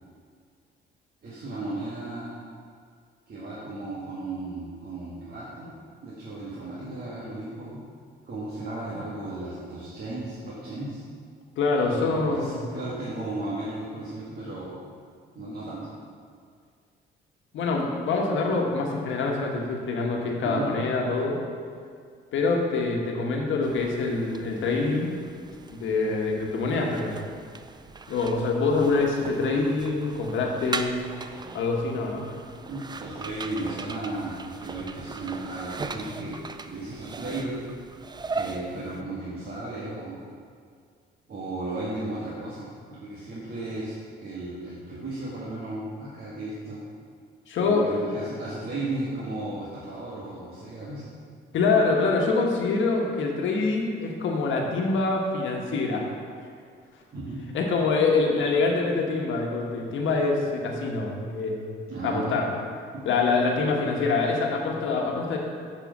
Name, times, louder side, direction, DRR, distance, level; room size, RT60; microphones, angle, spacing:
voice 1, 1.2-2.3 3.3-5.8 6.0-7.8 8.2-11.0 11.7-14.9 15.4-15.9 20.4-20.7 32.7-36.4 36.7-37.6 38.3-40.2 41.3-44.0 44.2-46.8 47.6-51.1 57.1-57.4 61.9-62.3 62.9-63.0, right 2 dB, 50° right, -8 dB, 1.8 m, -35 dB
voice 2, 11.6-12.6 17.5-21.4 22.3-25.1 25.7-27.2 28.1-31.0 31.5-32.2 47.5-47.9 51.5-56.1 57.5-61.7 62.0-62.5 63.0-65.4, left 3 dB, 75° left, 0 dB, 1.3 m, -25 dB
sound 1, 23.6-39.0, right 4 dB, 20° right, 0.4 m, -39 dB
7.2 x 4.8 x 6.4 m, 2.1 s
cardioid pair, 90°, 20 cm